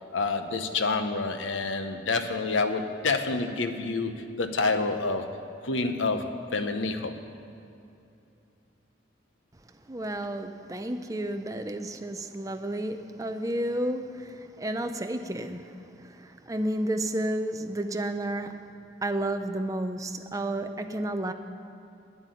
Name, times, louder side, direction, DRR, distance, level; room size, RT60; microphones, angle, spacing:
voice 1, 0.1-5.3 5.6-7.1, left 3 dB, 85° left, 8 dB, 0.8 m, -28 dB
voice 2, 9.9-18.7 19.0-21.3, right 1 dB, 15° right, 7 dB, 0.5 m, -31 dB
9.9 x 8.0 x 9.1 m, 2.7 s
head